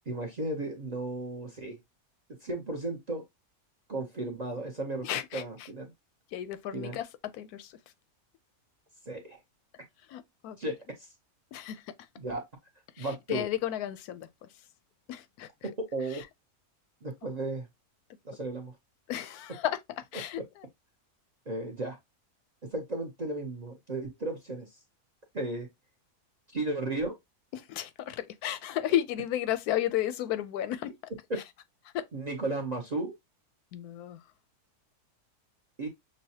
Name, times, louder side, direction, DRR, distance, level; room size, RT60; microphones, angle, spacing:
voice 1, 0.1-1.8 2.4-3.3 3.9-5.1 5.3-5.9 6.7-7.0 9.1-9.4 10.6-11.1 12.2-12.4 13.0-13.4 15.8-16.2 17.0-17.7 18.2-18.7 21.5-22.0 22.7-24.7 25.3-25.7 26.5-27.2 32.1-33.1 35.8-35.9, right 2 dB, 40° right, 0.6 m, -34 dB
voice 2, 5.0-5.7 6.3-7.1 7.3-7.8 10.1-10.6 11.5-11.8 13.0-14.5 15.1-15.7 16.1-16.2 19.1-19.8 20.1-20.7 27.5-30.9 31.9-32.1 33.7-34.2, left 12 dB, 85° left, 1.1 m, -33 dB
6.3 x 2.2 x 2.7 m
omnidirectional pair, 1.6 m